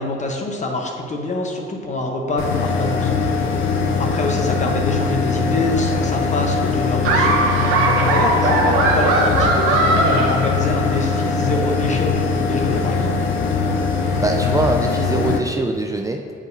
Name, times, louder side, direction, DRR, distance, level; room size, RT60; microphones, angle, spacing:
voice 1, 0.0-3.5 4.0-7.4 8.0-13.2, left 2 dB, 35° left, 2 dB, 0.9 m, -25 dB
sound 1, 2.4-15.4, left 4 dB, 90° left, 0.5 m, -21 dB
Laughter, 7.0-11.1, right 2 dB, 90° right, 0.9 m, -19 dB
voice 2, 14.2-16.3, right 2 dB, 15° right, 2 dB, 0.3 m, -22 dB
7.6 x 4.8 x 2.7 m, 2.5 s
cardioid pair, 90°, 20 cm